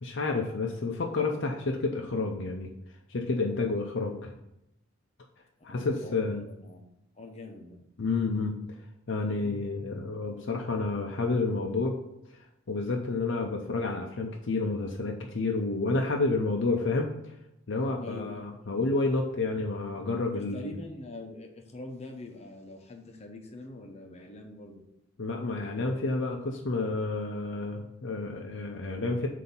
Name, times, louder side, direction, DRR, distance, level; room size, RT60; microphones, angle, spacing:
voice 1, 0.0-2.7 3.1-4.3 5.6-6.4 8.0-8.5 9.1-12.0 12.7-17.3 17.7-20.7 25.2-29.3, left 3 dB, 60° left, 1 dB, 0.6 m, -30 dB
voice 2, 5.7-7.8 9.5-9.6 18.0-18.5 20.3-24.8, left 2 dB, 30° left, 2 dB, 0.9 m, -44 dB
7.8 x 2.8 x 5.5 m, 0.84 s
head